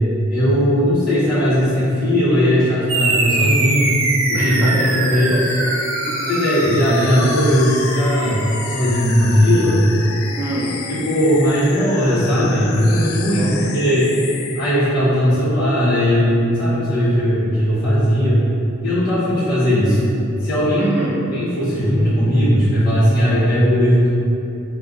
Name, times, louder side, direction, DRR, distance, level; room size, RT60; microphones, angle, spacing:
voice 1, 0.3-4.0 4.3-4.7 5.0-5.4 6.3-8.4 8.6-9.8 10.9-14.1 14.5-18.4 18.8-20.1 20.4-20.9 21.3-24.2, equal, 45° left, -13 dB, 1.0 m, -17 dB
sound 1, 2.9-11.8, right 2 dB, 75° right, 0.5 m, -25 dB
voice 2, 4.3-5.8 6.1-6.6 6.9-7.1 10.4-10.8 13.3-13.9 20.8-21.3, right 1 dB, 10° right, -6 dB, 0.5 m, -27 dB
sound 2, 5.3-15.0, left 6 dB, 85° left, 0.3 m, -32 dB
5.0 x 2.2 x 3.7 m, 2.9 s
head